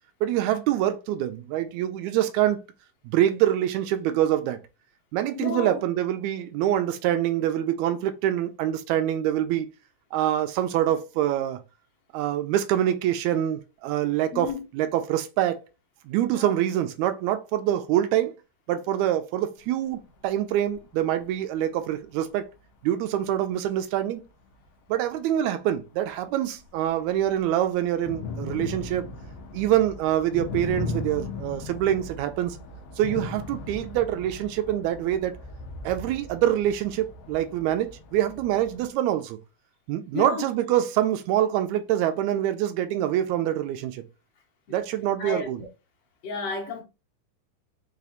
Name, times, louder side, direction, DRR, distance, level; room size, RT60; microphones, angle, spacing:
voice 1, 0.2-2.6 3.0-4.6 5.1-9.7 10.1-11.6 12.1-15.6 16.0-18.3 18.7-22.5 22.8-24.2 24.9-29.1 29.5-32.6 33.0-35.3 35.8-39.4 39.9-44.0 44.7-45.6, right 12 dB, 90° right, 1.6 m, -25 dB
voice 2, 5.3-5.8 14.3-14.6 16.3-16.5 40.1-40.4 44.7-44.8 45.2-45.5 46.2-46.8, left 5 dB, 70° left, 1.6 m, -32 dB
sound 1, 20.0-20.1 20.7-20.8 21.8-21.9 22.5-22.6 24.5-24.6 25.1-25.2 26.2-26.3 26.6-38.9, left 3 dB, 90° left, 1.3 m, -38 dB
5.2 x 2.4 x 4.0 m
omnidirectional pair, 3.8 m